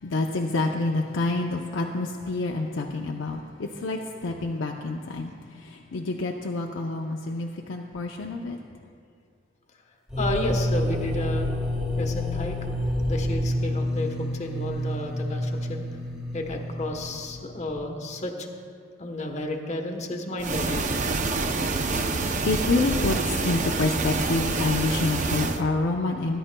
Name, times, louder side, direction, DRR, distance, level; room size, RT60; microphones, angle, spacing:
voice 1, 0.0-8.6 21.2-26.4, left 3 dB, 85° left, 1 dB, 0.6 m, -28 dB
sound 1, 10.1-17.8, left 1 dB, 5° right, 1.4 m, -29 dB
voice 2, 10.2-11.5 12.0-12.7 13.1-15.8 16.3-18.5 19.0-20.9, left 1 dB, 40° left, 2 dB, 1.0 m, -32 dB
sound 2, 20.4-25.6, right 3 dB, 40° right, 0.6 m, -27 dB
19.0 x 10.0 x 2.2 m, 2.3 s
head